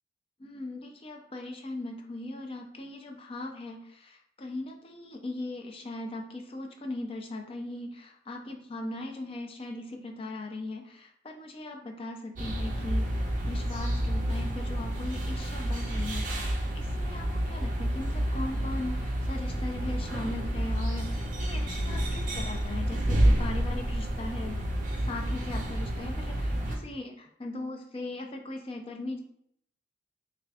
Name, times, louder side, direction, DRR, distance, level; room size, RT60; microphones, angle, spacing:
voice 1, 0.4-24.6 25.0-29.2, left 2 dB, 30° left, 2 dB, 0.5 m, -39 dB
sound 1, 12.4-26.8, right 1 dB, 45° right, 0.6 m, -29 dB
3.4 x 2.4 x 3.4 m, 0.68 s
head